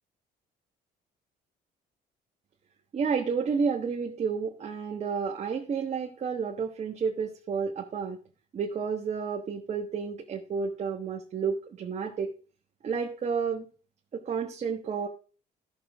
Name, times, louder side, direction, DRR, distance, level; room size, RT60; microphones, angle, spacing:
voice 1, 2.9-8.2 8.5-12.3 12.8-13.6 14.1-15.1, right 6 dB, 40° right, 1 dB, 1.3 m, -31 dB
13.5 x 6.4 x 3.7 m, 0.38 s
cardioid pair, 110°, 17 cm